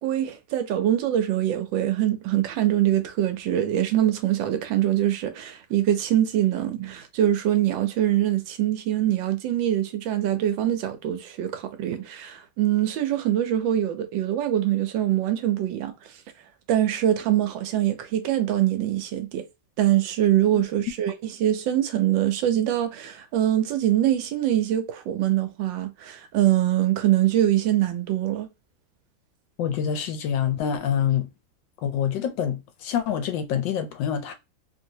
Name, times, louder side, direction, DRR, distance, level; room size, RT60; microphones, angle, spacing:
voice 1, 0.0-15.9 16.7-19.4 19.8-28.5, right 12 dB, 80° right, 1.3 m, -23 dB
voice 2, 29.6-31.3 31.8-34.3, left 8 dB, 75° left, 1.3 m, -26 dB
3.2 x 2.7 x 2.7 m
omnidirectional pair, 2.1 m